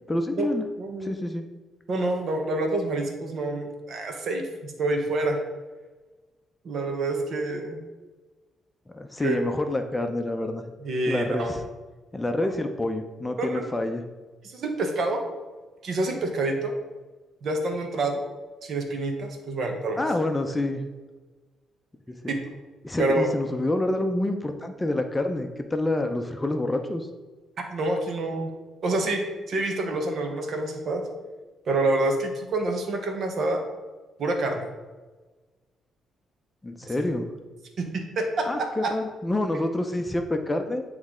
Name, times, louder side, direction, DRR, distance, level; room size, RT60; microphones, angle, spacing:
voice 1, 0.1-0.6 1.0-1.4 8.9-10.6 11.1-11.6 12.1-14.0 20.0-20.8 22.1-22.3 22.8-27.1 36.6-37.2 38.5-40.8, left 1 dB, 15° left, 6 dB, 0.6 m, -27 dB
voice 2, 0.8-1.1 1.9-5.4 6.6-7.8 9.2-9.4 10.8-11.6 12.4-12.5 13.4-13.7 14.4-15.2 15.8-16.7 17.4-18.2 18.6-20.0 22.3-22.5 23.0-23.3 27.7-28.5 28.8-31.1 31.7-33.6 34.2-34.7 36.8-37.1 37.8-38.9, right 2 dB, 60° right, 4 dB, 1.1 m, -27 dB
9.2 x 3.2 x 3.7 m, 1.3 s
cardioid pair, 90°, 0 cm